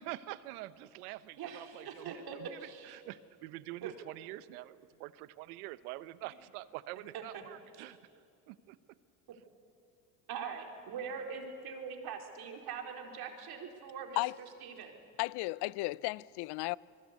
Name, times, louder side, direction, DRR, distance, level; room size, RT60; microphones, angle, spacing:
voice 1, 0.0-8.0 8.5-8.8, right 16 dB, 80° right, 1.0 m, -46 dB
voice 2, 1.4-3.0 3.8-3.9 7.1-7.4 7.7-7.8 10.3-14.2 14.6-15.0, right 6 dB, 55° right, 4.4 m, -42 dB
voice 3, 15.2-16.8, left 22 dB, 60° left, 0.6 m, -34 dB
26.5 x 21.5 x 8.4 m
supercardioid pair, 90°, 44 cm